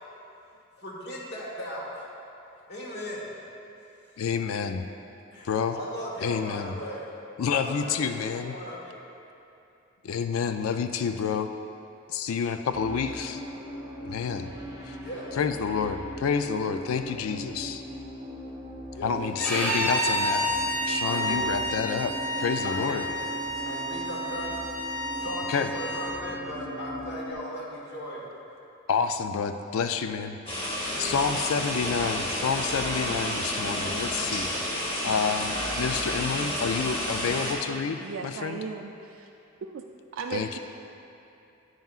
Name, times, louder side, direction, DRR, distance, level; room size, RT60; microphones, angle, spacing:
voice 1, 0.8-2.1 2.7-3.4 5.3-7.1 7.5-9.0 15.0-15.3 18.9-19.1 21.0-21.4 22.6-23.0 23.7-28.2 30.9-31.2, equal, 55° left, -3 dB, 1.4 m, -37 dB
voice 2, 4.2-4.9 5.4-5.8 6.2-6.7 7.4-8.6 10.0-11.5 12.1-13.4 14.0-14.5 14.8-15.0 15.4-17.8 19.0-23.0 25.5-25.7 28.9-30.4 31.0-34.5 35.0-38.6 40.3-40.6, left 6 dB, 85° left, 8 dB, 0.4 m, -29 dB
sound 1, 12.7-27.3, left 1 dB, 20° right, 0.9 m, -40 dB
Bowed string instrument, 19.4-26.1, right 1 dB, 5° left, 1.4 m, -30 dB
sound 2, 30.5-37.5, equal, 25° left, 1.2 m, -30 dB
voice 3, 38.0-39.3 39.6-39.8 40.1-40.6, right 5 dB, 70° right, 2 dB, 0.3 m, -36 dB
9.2 x 9.2 x 2.4 m, 2.8 s
head